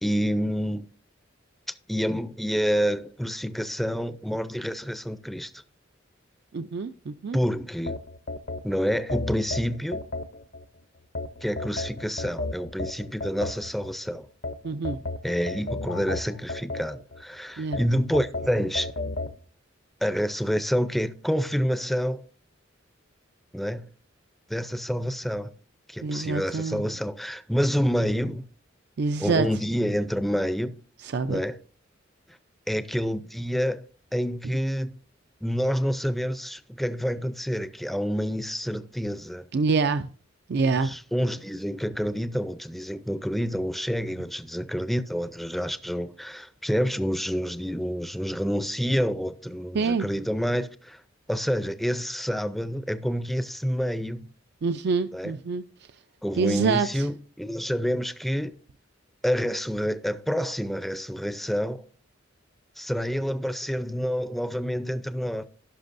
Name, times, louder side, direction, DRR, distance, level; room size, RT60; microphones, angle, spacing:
voice 1, 0.0-0.8 1.9-5.5 7.3-8.0 8.6-10.0 11.4-14.3 15.2-18.9 20.0-22.2 23.5-23.9 24.5-25.5 25.9-28.4 29.2-30.8 31.3-31.6 32.7-33.9 34.1-34.9 35.4-39.4 40.8-51.0 51.3-54.3 55.1-55.3 56.2-58.6 59.2-61.8 62.8-65.4, equal, ahead, 0.5 m, -28 dB
voice 2, 6.5-7.4 14.6-15.0 17.6-17.8 26.0-26.9 29.0-29.5 31.0-31.4 39.5-40.1 40.5-41.0 49.7-50.1 54.6-56.0 56.3-57.1, right 4 dB, 60° right, 0.4 m, -26 dB
sound 1, 7.9-10.6 11.1-13.9 14.4-17.2 17.7-19.4, left 2 dB, 50° left, 0.7 m, -33 dB
17.0 x 5.9 x 2.6 m
head